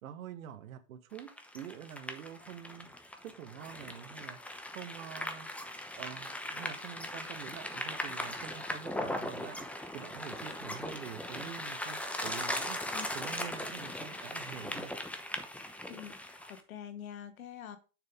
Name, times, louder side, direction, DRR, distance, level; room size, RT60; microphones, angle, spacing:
voice 1, 0.0-4.4 4.7-5.5 5.9-9.7 9.9-14.9, right 9 dB, 75° right, 1.2 m, -46 dB
sound 1, 1.2-16.6, left 1 dB, 5° left, 0.9 m, -39 dB
voice 2, 15.9-17.8, left 9 dB, 80° left, 1.3 m, -46 dB
6.8 x 6.6 x 3.5 m
hypercardioid pair, 105°, 41 cm